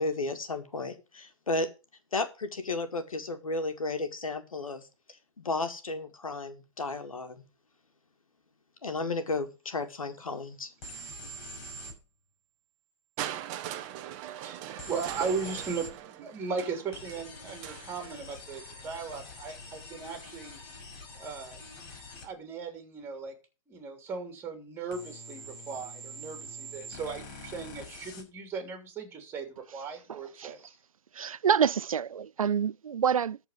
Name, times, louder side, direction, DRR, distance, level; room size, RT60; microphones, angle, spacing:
voice 1, 0.0-1.7 2.1-7.4 8.8-10.7, left 3 dB, 90° left, 2.1 m, -33 dB
sound 1, 10.8-12.0 14.8-15.9 16.9-22.3 24.9-28.2, equal, 30° left, 6.3 m, -45 dB
Crushing, 13.2-19.1 20.0-20.1, right 11 dB, 30° right, 1.1 m, -41 dB
voice 2, 14.4-20.6 21.1-21.6 22.2-23.4 23.7-30.7, right 5 dB, 15° right, 3.1 m, -37 dB
voice 3, 30.1-30.5 31.1-33.4, right 7 dB, 90° right, 0.4 m, -27 dB
13.5 x 4.6 x 7.3 m
hypercardioid pair, 140°, 17 cm